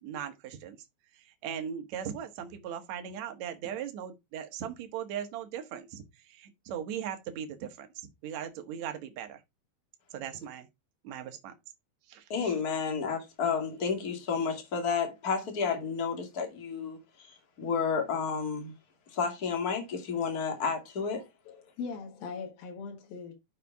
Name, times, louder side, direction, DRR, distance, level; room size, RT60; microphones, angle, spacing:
voice 1, 0.0-0.8 1.1-9.4 10.1-10.7 11.0-11.5 12.1-12.5, right 9 dB, 60° right, 2.3 m, -39 dB
voice 2, 12.3-18.7 19.1-21.2, left 5 dB, 30° left, 2.4 m, -31 dB
voice 3, 21.5-23.4, left 5 dB, 80° left, 3.2 m, -40 dB
10.0 x 6.8 x 3.6 m
omnidirectional pair, 4.2 m